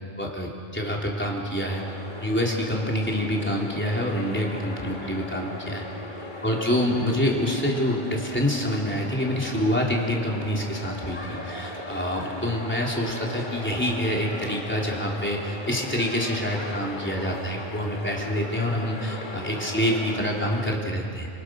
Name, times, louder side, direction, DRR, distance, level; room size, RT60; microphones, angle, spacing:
voice 1, 0.2-1.8 2.2-5.8 6.4-21.3, equal, 10° left, -2 dB, 3.9 m, -26 dB
sound 1, 1.7-20.8, left 2 dB, 50° left, 2.0 m, -38 dB
29.0 x 27.5 x 6.6 m, 2.6 s
omnidirectional pair, 1.0 m